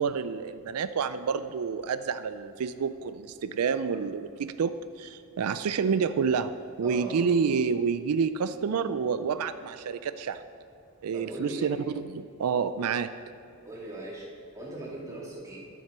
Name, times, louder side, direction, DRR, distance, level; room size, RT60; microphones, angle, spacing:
voice 1, 0.0-6.5 6.8-10.4 11.0-13.1, right 6 dB, 90° right, 12 dB, 0.4 m, -28 dB
voice 2, 6.8-7.3 11.1-11.8 13.6-14.3 14.5-15.7, right 1 dB, 15° right, -5 dB, 2.3 m, -39 dB
11.0 x 7.3 x 6.1 m, 2.6 s
head